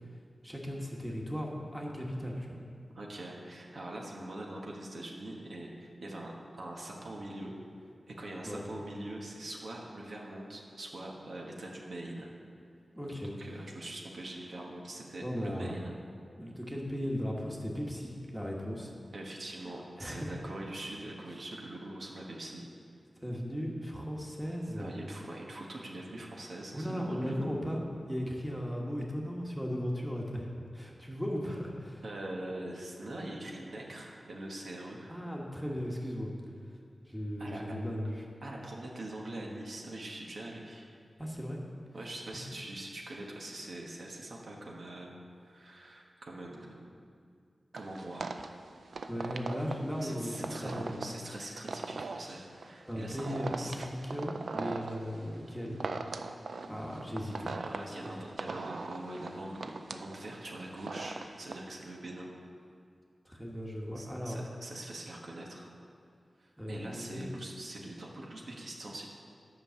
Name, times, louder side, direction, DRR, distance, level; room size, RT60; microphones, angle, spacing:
voice 1, 0.4-2.6 8.4-8.7 12.9-13.3 15.2-15.7 16.4-18.9 20.0-20.4 23.2-24.9 26.7-27.8 28.1-32.0 35.1-36.3 37.1-38.3 41.2-41.6 42.3-42.6 49.1-51.0 52.9-55.8 56.7-57.5 58.0-58.1 63.2-64.4 66.6-67.3, equal, ahead, -2 dB, 1.3 m, -37 dB
voice 2, 2.9-7.5 8.1-12.3 13.1-15.9 19.1-22.7 24.8-27.6 32.0-35.1 37.4-37.6 38.4-40.9 41.9-45.1 45.4-46.9 47.7-48.3 49.6-49.7 50.0-53.3 53.6-53.7 57.6-62.3 64.0-65.7 66.4-69.1, right 1 dB, 75° right, -1 dB, 1.3 m, -43 dB
sound 1, 47.7-61.6, right 4 dB, 90° right, 0.4 m, -40 dB
10.0 x 5.5 x 6.9 m, 2.3 s
wide cardioid pair, 100°, 0 cm